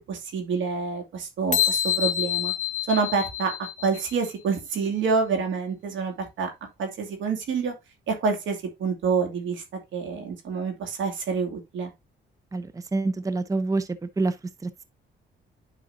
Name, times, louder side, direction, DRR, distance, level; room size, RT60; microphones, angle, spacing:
voice 1, 0.1-2.5 2.9-6.5 6.8-7.7 8.1-9.6 9.9-11.9, right 5 dB, 75° right, 2.5 m, -27 dB
sound 1, 1.5-4.1, left 10 dB, 40° left, 1.2 m, -27 dB
voice 2, 12.5-13.9 14.2-14.3 14.6-14.8, right 3 dB, 15° right, 0.7 m, -26 dB
9.4 x 5.4 x 2.7 m
cardioid pair, 90°, 20 cm